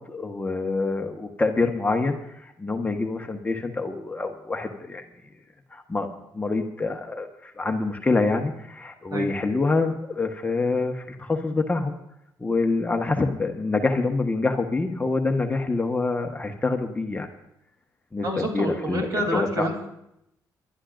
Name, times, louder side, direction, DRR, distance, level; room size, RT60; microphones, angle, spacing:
voice 1, 0.0-5.1 5.7-12.0 12.4-17.3 18.1-19.1 19.3-19.6, left 3 dB, 20° left, 4 dB, 1.2 m, -26 dB
voice 2, 18.2-19.9, equal, 50° right, 2 dB, 3.3 m, -28 dB
28.5 x 11.5 x 2.6 m, 0.80 s
cardioid pair, 80°, 8 cm